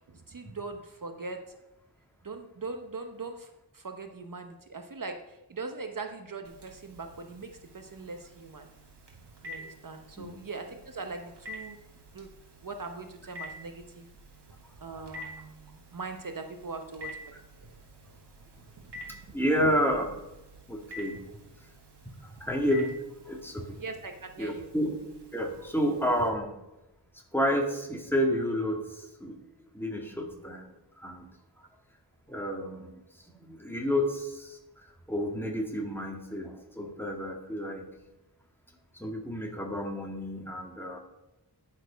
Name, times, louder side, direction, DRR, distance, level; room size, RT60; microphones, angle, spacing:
voice 1, 0.0-1.6 2.2-8.7 9.4-11.8 12.1-12.3 12.6-14.1 14.8-17.8 18.8-19.4 23.7-24.7, right 3 dB, 55° right, 6 dB, 1.0 m, -41 dB
Telephone, 6.4-26.3, left 1 dB, 85° right, 1.8 m, -49 dB
voice 2, 19.3-20.1 20.7-21.2 22.2-22.9 23.3-23.8 24.4-25.0 25.3-26.5 27.3-29.4 29.7-30.7 31.0-31.3 32.3-33.0 33.4-37.9 39.0-41.0, equal, 5° left, 1 dB, 2.1 m, -30 dB
10.0 x 7.1 x 5.1 m, 0.95 s
wide cardioid pair, 65°, 40 cm